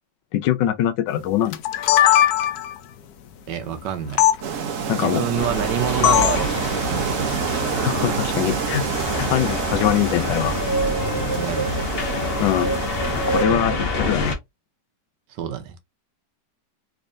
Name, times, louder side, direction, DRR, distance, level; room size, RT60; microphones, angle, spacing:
voice 1, 0.3-1.6 4.9-5.2 7.7-8.9 9.1-10.6 12.4-12.8 13.3-14.3, left 12 dB, 85° left, 1.3 m, -23 dB
sound 1, 1.5-2.8 4.2-4.4 6.0-6.5, left 11 dB, 70° left, 1.0 m, -17 dB
voice 2, 3.5-4.2 4.9-7.3 11.1-11.8 13.4-13.8 15.3-15.8, right 9 dB, 80° right, 1.4 m, -28 dB
sound 2, 4.4-13.4, right 7 dB, 55° right, 1.0 m, -27 dB
sound 3, 5.3-14.3, left 2 dB, 45° left, 0.9 m, -27 dB
3.6 x 3.3 x 2.6 m
omnidirectional pair, 1.9 m